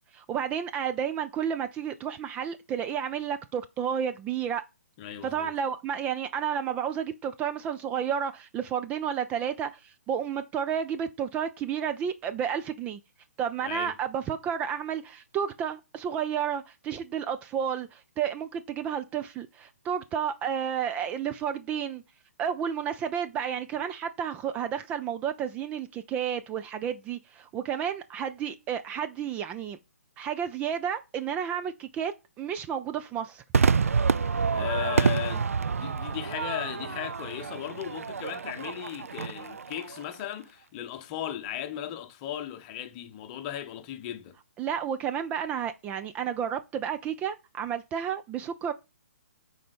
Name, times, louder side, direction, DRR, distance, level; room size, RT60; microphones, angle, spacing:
voice 1, 0.1-4.6 5.2-13.0 13.4-22.0 22.4-29.8 30.2-33.4 44.6-48.7, right 8 dB, 15° right, 0.5 m, -31 dB
voice 2, 5.0-5.5 13.6-13.9 34.5-44.4, left 11 dB, 30° left, 1.1 m, -36 dB
Crowd / Fireworks, 33.5-40.1, right 5 dB, 65° right, 0.5 m, -28 dB
9.2 x 4.2 x 5.2 m
figure-of-eight pair, 130°, 8 cm